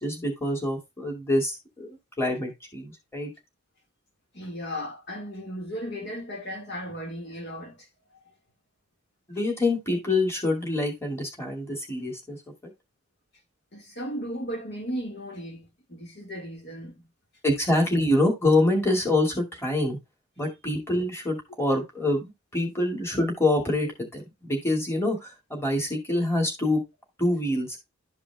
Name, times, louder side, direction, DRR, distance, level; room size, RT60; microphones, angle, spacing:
voice 1, 0.0-1.9 2.2-3.3 9.3-12.4 12.6-12.7 17.4-20.0 20.4-26.8 27.2-27.8, left 1 dB, 10° left, 2.4 m, -26 dB
voice 2, 4.3-7.9 13.7-17.1, equal, 55° left, 1.9 m, -36 dB
12.5 x 5.0 x 2.3 m
head